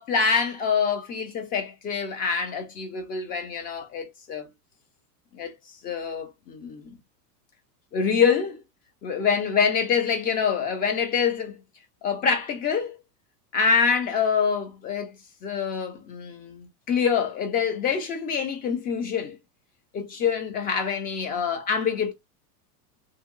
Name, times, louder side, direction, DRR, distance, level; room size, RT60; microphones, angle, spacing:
voice 1, 0.0-4.5 5.3-5.5 5.8-7.0 7.9-8.6 9.0-11.6 12.0-13.0 13.5-15.2 15.4-19.4 19.9-22.1, left 6 dB, 20° left, 0.4 m, -25 dB
2.9 x 2.7 x 2.3 m
supercardioid pair, 135°, 49 cm